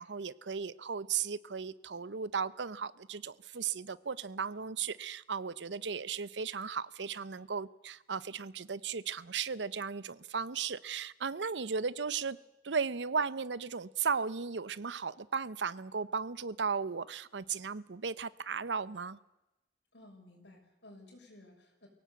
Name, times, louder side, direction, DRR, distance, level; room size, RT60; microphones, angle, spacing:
voice 1, 0.0-12.4 12.6-19.2, right 5 dB, 85° right, 19 dB, 0.7 m, -36 dB
voice 2, 19.9-21.9, left 1 dB, 75° left, 0 dB, 6.5 m, -55 dB
23.5 x 17.0 x 8.3 m, 0.98 s
head